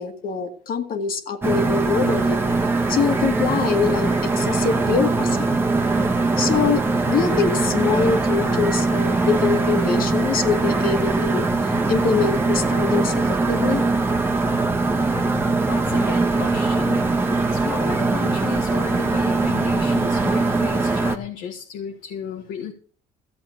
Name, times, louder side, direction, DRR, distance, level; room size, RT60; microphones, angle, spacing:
voice 1, 0.0-2.4 2.9-5.5 6.4-11.5 11.9-13.8, left 6 dB, 60° left, 5 dB, 2.1 m, -24 dB
sound 1, 1.4-21.2, right 3 dB, 15° right, 1.4 m, -21 dB
voice 2, 15.7-22.7, left 8 dB, 85° left, 2 dB, 1.8 m, -34 dB
14.5 x 7.8 x 6.1 m, 0.43 s
cardioid pair, 110°, 17 cm